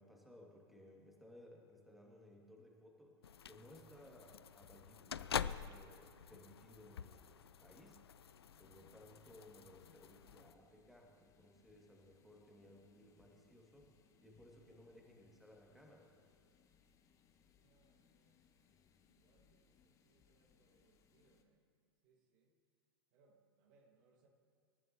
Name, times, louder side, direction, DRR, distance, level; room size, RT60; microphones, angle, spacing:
voice 1, 0.0-3.2 3.4-8.0 8.6-13.9 14.2-16.1, left 1 dB, ahead, -1 dB, 2.5 m, -61 dB
sound 1, 3.2-10.5, left 8 dB, 70° left, 0.5 m, -47 dB
sound 2, 8.3-21.4, left 6 dB, 25° left, 1.2 m, -72 dB
voice 2, 17.4-21.6 22.0-22.5 23.1-24.3, right 3 dB, 45° right, 1 dB, 2.1 m, -75 dB
27.5 x 14.0 x 3.1 m, 2.4 s
figure-of-eight pair, 95°, 14 cm